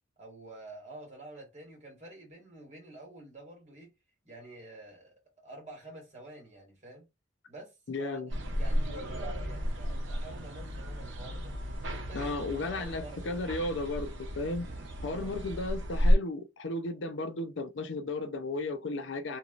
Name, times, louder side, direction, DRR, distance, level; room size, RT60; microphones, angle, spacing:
voice 1, 0.2-3.9 4.2-5.1 5.4-7.1 7.5-11.6 11.9-12.3 12.7-13.4 15.0-15.4, right 2 dB, 35° right, 1.7 m, -48 dB
voice 2, 7.9-8.3 12.1-14.7 15.0-19.4, left 2 dB, 65° left, 0.5 m, -34 dB
sound 1, 8.3-16.1, equal, 65° right, 0.8 m, -32 dB
2.9 x 2.7 x 2.4 m
head